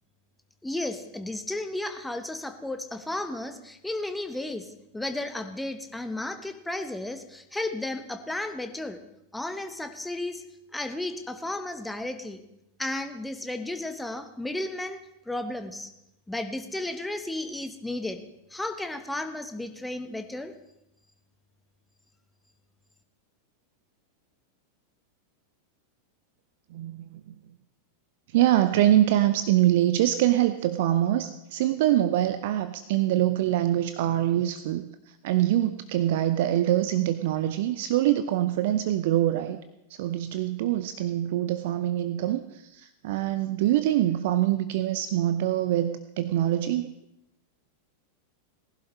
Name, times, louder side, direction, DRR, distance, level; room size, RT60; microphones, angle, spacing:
voice 1, 0.6-4.7 4.9-9.0 9.3-10.4 10.7-12.4 12.8-15.0 15.3-15.9 16.3-18.2 18.5-20.5, left 2 dB, 5° left, 8 dB, 1.1 m, -33 dB
voice 2, 26.7-27.2 28.3-34.9 35.2-39.6 39.9-46.9, right 13 dB, 50° right, 11 dB, 0.6 m, -24 dB
19.0 x 11.5 x 3.2 m, 0.84 s
figure-of-eight pair, 90°, 0 cm